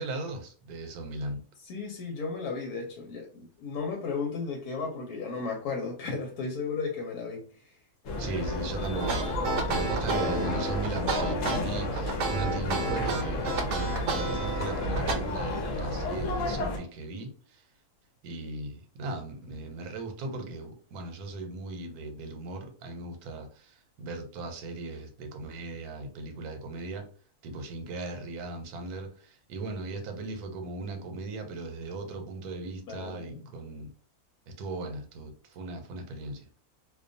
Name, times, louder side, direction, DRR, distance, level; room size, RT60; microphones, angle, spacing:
voice 1, 0.0-1.4 8.2-17.6 18.2-27.1 27.4-33.9 34.5-36.5, right 2 dB, 80° right, 1.1 m, -37 dB
voice 2, 1.6-7.8 32.9-33.5, left 4 dB, 85° left, 1.1 m, -35 dB
sound 1, 8.0-16.8, left 1 dB, 65° left, 0.9 m, -32 dB
sound 2, 9.0-15.1, right 3 dB, 65° right, 0.8 m, -31 dB
2.5 x 2.2 x 2.5 m
omnidirectional pair, 1.6 m